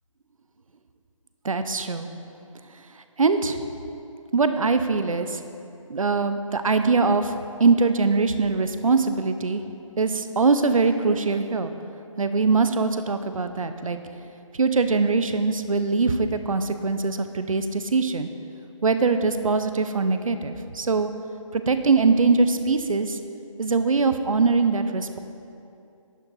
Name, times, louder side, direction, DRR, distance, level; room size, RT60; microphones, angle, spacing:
voice 1, 1.4-2.1 3.2-3.6 4.3-5.4 5.9-9.6 10.0-11.7 12.2-14.0 14.6-18.3 18.8-21.1 21.5-23.2 23.6-25.2, right 4 dB, 80° right, 9 dB, 0.7 m, -22 dB
11.0 x 6.4 x 4.0 m, 2.7 s
figure-of-eight pair, 160°, 17 cm